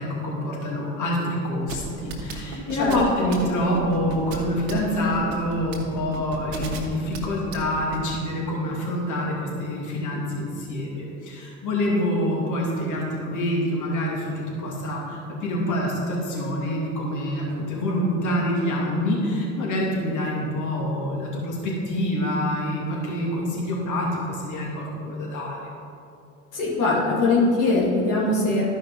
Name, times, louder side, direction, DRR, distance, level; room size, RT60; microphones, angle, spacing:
voice 1, 0.0-25.7, left 1 dB, 50° left, -3 dB, 2.5 m, -26 dB
sound 1, 1.7-8.1, right 4 dB, 80° right, 1.3 m, -34 dB
voice 2, 26.5-28.6, left 2 dB, 85° left, -7 dB, 2.4 m, -21 dB
12.5 x 5.2 x 5.4 m, 2.6 s
hypercardioid pair, 60°, 37 cm